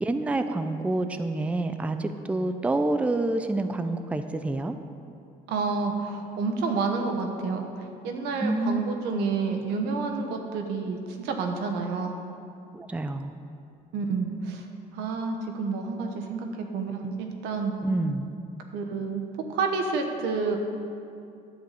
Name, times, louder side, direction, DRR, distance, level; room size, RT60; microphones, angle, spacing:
voice 1, 0.0-4.7 8.4-8.8 12.7-13.3 17.8-18.3, right 2 dB, 10° right, 8 dB, 0.4 m, -27 dB
voice 2, 5.5-7.7 8.0-12.2 13.9-14.6 14.9-17.7 18.7-19.2 19.5-20.6, right 4 dB, 85° right, 4 dB, 1.0 m, -29 dB
10.5 x 7.8 x 4.1 m, 2.5 s
cardioid pair, 110°, 17 cm